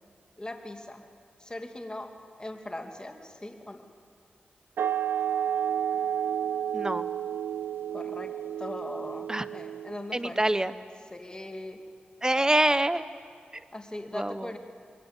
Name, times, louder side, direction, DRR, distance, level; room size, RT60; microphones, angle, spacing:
voice 1, 0.4-1.1 1.4-3.8 7.9-10.4 11.1-11.8 13.7-14.6, left 1 dB, 25° left, 4 dB, 2.6 m, -40 dB
sound 1, 4.8-10.2, right 9 dB, 90° right, 0.5 m, -31 dB
voice 2, 6.7-7.0 9.3-9.5 10.1-10.7 12.2-13.0 13.5-13.6 14.1-14.5, right 1 dB, 20° right, 13 dB, 1.1 m, -25 dB
26.0 x 23.0 x 7.4 m, 2.2 s
cardioid pair, 40°, 4 cm